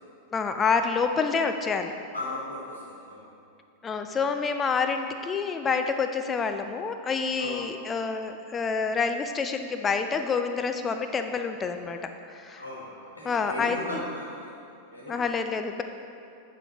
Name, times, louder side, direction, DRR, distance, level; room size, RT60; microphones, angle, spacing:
voice 1, 0.3-1.9 3.8-12.6 13.2-14.0 15.1-15.8, left 5 dB, 20° left, 7 dB, 0.4 m, -28 dB
voice 2, 2.1-3.2 7.4-7.6 12.5-15.2, left 1 dB, 80° left, -5 dB, 1.3 m, -37 dB
9.0 x 3.8 x 4.3 m, 2.5 s
figure-of-eight pair, 90°, 0 cm